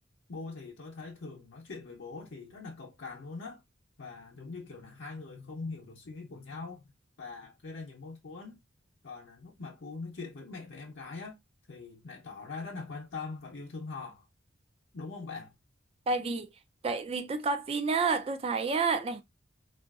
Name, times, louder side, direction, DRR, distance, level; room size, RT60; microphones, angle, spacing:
voice 1, 0.3-3.6 4.0-6.8 7.2-8.6 9.0-11.4 11.7-14.3 14.9-15.5, left 4 dB, 65° left, 0.7 m, -42 dB
voice 2, 16.1-16.5 16.8-19.2, right 4 dB, 30° right, 0.3 m, -29 dB
3.8 x 2.4 x 2.3 m
head